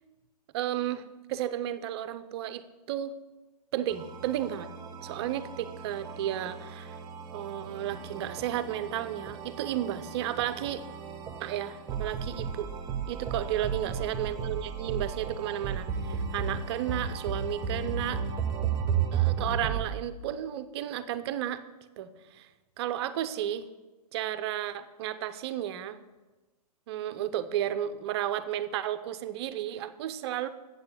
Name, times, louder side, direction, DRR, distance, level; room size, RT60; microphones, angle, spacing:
voice 1, 0.5-1.0 1.3-3.1 3.7-4.7 5.0-7.0 7.3-10.8 11.4-12.7 13.1-18.2 19.1-21.6 22.0-22.5 22.8-23.7 24.1-26.0 26.9-30.5, right 11 dB, 40° right, 12 dB, 0.6 m, -33 dB
sound 1, 3.9-19.9, right 7 dB, 20° right, 0.9 m, -34 dB
8.1 x 6.7 x 7.1 m, 1.2 s
hypercardioid pair, 135°, 21 cm